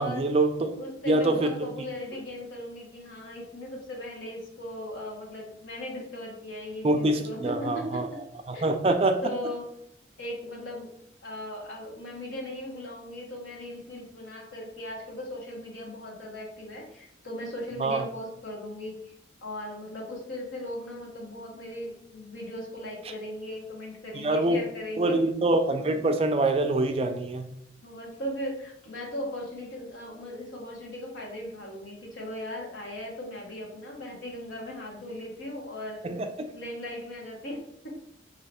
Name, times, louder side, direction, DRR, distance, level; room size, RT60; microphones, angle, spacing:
voice 1, 0.0-0.7 1.1-1.5 6.8-8.1 8.5-9.2 17.8-18.0 24.1-24.6 25.0-27.5 36.0-36.5, right 2 dB, 30° right, 6 dB, 0.3 m, -25 dB
voice 2, 0.8-8.2 8.5-8.7 9.2-9.7 10.2-10.9 11.2-19.1 19.4-25.2 27.8-36.0 36.5-38.0, left 1 dB, 85° left, -1 dB, 1.1 m, -38 dB
3.2 x 2.8 x 4.2 m, 0.72 s
head